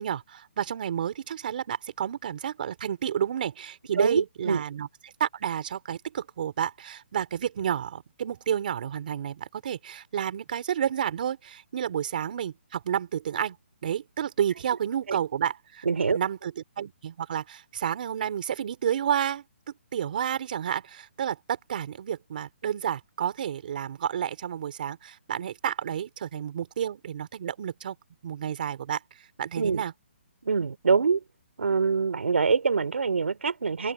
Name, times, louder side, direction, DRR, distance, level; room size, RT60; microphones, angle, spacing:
voice 1, 0.0-4.9 5.2-13.6 13.8-15.9 16.1-16.5 16.8-19.4 19.9-28.0 28.2-29.0 29.4-29.9, right 9 dB, 45° right, 3.9 m, -30 dB
voice 2, 3.9-4.6 15.1-15.2 15.8-16.2 29.6-29.8 30.4-31.2 31.6-33.9, right 5 dB, 80° right, 2.8 m, -24 dB
open air
hypercardioid pair, 165°, 7 cm